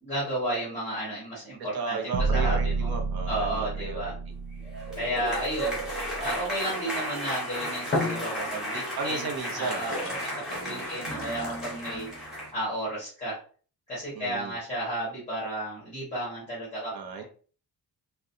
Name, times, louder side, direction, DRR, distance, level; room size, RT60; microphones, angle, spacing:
voice 1, 0.0-2.0 2.3-2.9 3.3-4.1 5.0-5.8 6.2-9.3 9.5-9.9 10.2-12.1 12.5-13.4 13.9-16.9, right 1 dB, 15° left, -7 dB, 1.5 m, -32 dB
voice 2, 1.7-4.1 5.1-5.4 9.0-10.9 14.1-14.6 16.9-17.2, right 4 dB, 65° right, 4 dB, 0.8 m, -35 dB
sound 1, 2.1-6.3, right 4 dB, 35° right, 0.4 m, -30 dB
sound 2, 4.6-12.5, equal, ahead, 1.0 m, -34 dB
sound 3, 7.8-8.8 9.4-12.2, left 2 dB, 35° left, 0.7 m, -35 dB
3.7 x 2.3 x 2.6 m, 0.40 s
wide cardioid pair, 170°, 39 cm